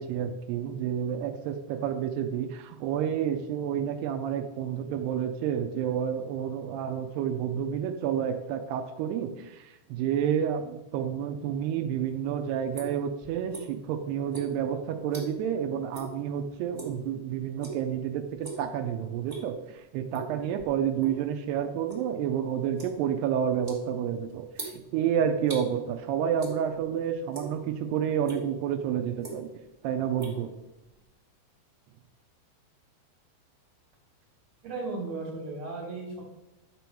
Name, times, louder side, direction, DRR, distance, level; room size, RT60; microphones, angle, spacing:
voice 1, 0.0-29.5 29.8-30.5, right 8 dB, 85° right, 5 dB, 2.3 m, -30 dB
sound 1, 12.1-13.9 14.3-15.6 15.9-16.2 16.5-17.0 17.6-17.9 18.3-18.7 19.1-19.6 20.1-21.2 21.5-25.7 26.4-26.9 27.2-27.8 28.2-28.4 29.0-29.7 29.9-31.1, right 3 dB, 60° right, 0.4 m, -41 dB
voice 2, 34.6-36.2, right 3 dB, 40° right, -1 dB, 3.7 m, -35 dB
11.5 x 4.5 x 7.0 m, 0.97 s
omnidirectional pair, 5.5 m